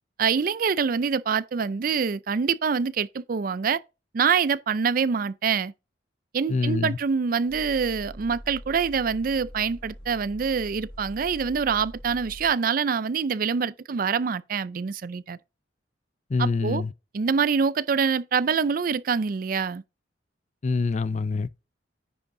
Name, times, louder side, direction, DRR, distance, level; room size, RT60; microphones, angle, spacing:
voice 1, 0.2-3.8 4.1-5.7 6.3-15.4 16.4-16.8 17.1-19.8, right 6 dB, 50° right, 0.4 m, -25 dB
voice 2, 6.5-7.0 16.3-16.9 20.6-21.7, left 4 dB, 40° left, 0.4 m, -26 dB
sound 1, 7.5-12.5, equal, 80° left, 4.7 m, -43 dB
10.0 x 5.2 x 3.8 m
head